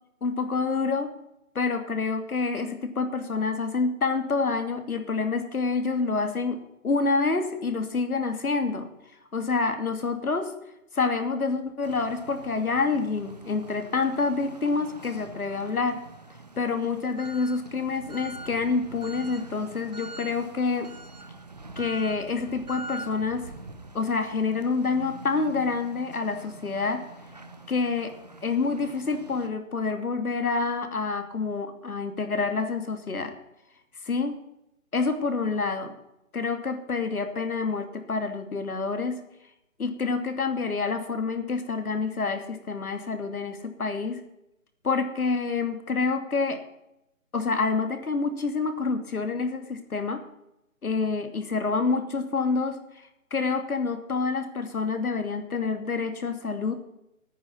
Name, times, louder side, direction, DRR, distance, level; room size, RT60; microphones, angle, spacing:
voice 1, 0.2-1.1 1.5-8.9 9.3-10.5 10.9-16.0 16.6-20.9 21.8-23.5 23.9-27.0 27.7-28.1 28.4-33.3 34.0-34.4 34.9-36.0 36.3-39.2 39.8-44.2 44.8-46.6 47.3-50.2 50.8-56.7, left 4 dB, 80° left, 7 dB, 2.8 m, -27 dB
sound 1, 11.8-29.5, right 2 dB, 30° right, 0.9 m, -44 dB
10.0 x 9.6 x 9.8 m, 0.84 s
hypercardioid pair, 180°, 43 cm